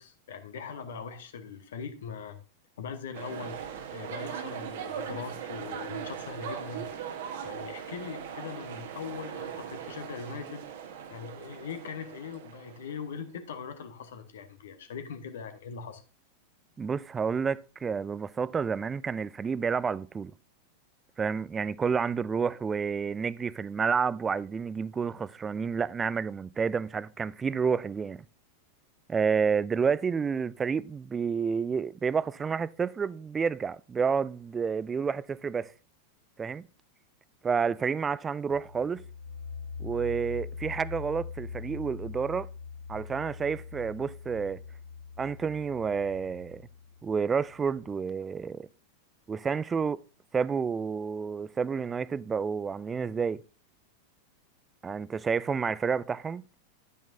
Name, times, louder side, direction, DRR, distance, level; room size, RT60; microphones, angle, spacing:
voice 1, 0.0-2.4 2.8-3.6 3.9-6.9 7.4-10.6 11.1-16.0, left 6 dB, 60° left, 1.1 m, -41 dB
sound 1, 3.1-13.0, right 8 dB, 55° right, 1.2 m, -39 dB
voice 2, 16.8-20.3 21.2-28.2 29.1-35.7 36.4-36.6 37.4-39.0 39.8-42.5 42.9-44.6 45.2-46.6 47.0-48.7 49.3-50.0 50.3-53.4 54.8-56.4, right 6 dB, 20° right, 0.3 m, -30 dB
sound 2, 38.5-48.1, left 5 dB, 80° right, 1.1 m, -42 dB
10.5 x 8.8 x 2.7 m
figure-of-eight pair, 90°, 0 cm